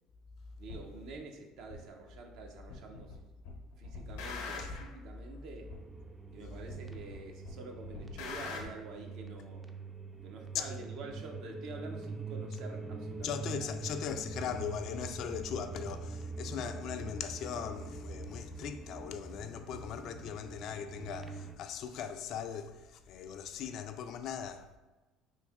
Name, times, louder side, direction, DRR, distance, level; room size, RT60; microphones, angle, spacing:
voice 1, 0.6-3.3 3.8-5.7 6.3-9.7 10.2-13.7, right 3 dB, 70° right, 0.6 m, -47 dB
sound 1, 0.7-0.8 1.7-1.8 2.7-3.2 3.4-4.9 5.7-5.8 6.7-7.2 7.4-8.7, left 5 dB, 85° left, 0.7 m, -42 dB
sound 2, 5.6-21.6, right 3 dB, 20° right, 0.3 m, -44 dB
voice 2, 13.2-24.8, left 8 dB, 60° left, 0.3 m, -39 dB
3.1 x 2.7 x 3.5 m
supercardioid pair, 80°, 0 cm